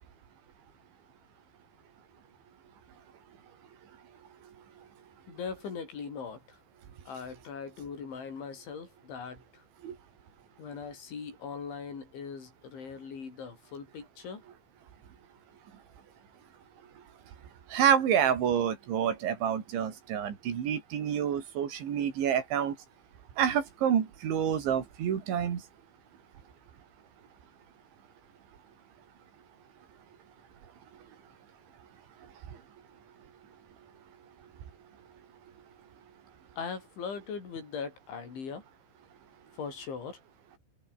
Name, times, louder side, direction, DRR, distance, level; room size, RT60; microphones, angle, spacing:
voice 1, 5.3-6.6 7.1-9.6 10.6-14.4 36.6-38.6 39.5-40.2, left 5 dB, 80° left, 8.5 m, -40 dB
voice 2, 17.7-22.8 23.4-25.6 32.5-32.6, right 9 dB, 80° right, 5.5 m, -28 dB
omnidirectional pair, 5.3 m